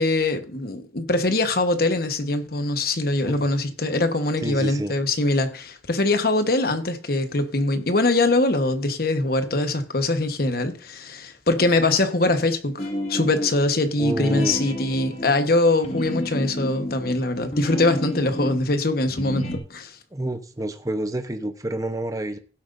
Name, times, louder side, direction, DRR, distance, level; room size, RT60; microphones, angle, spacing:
voice 1, 0.0-20.0, left 2 dB, 60° left, 1.2 m, -23 dB
voice 2, 4.4-4.9 14.0-14.6 20.1-22.4, right 1 dB, 20° right, 0.9 m, -28 dB
sound 1, 12.8-13.6 14.0-18.7 19.1-19.6, equal, 40° left, 1.9 m, -31 dB
16.5 x 7.9 x 2.6 m
head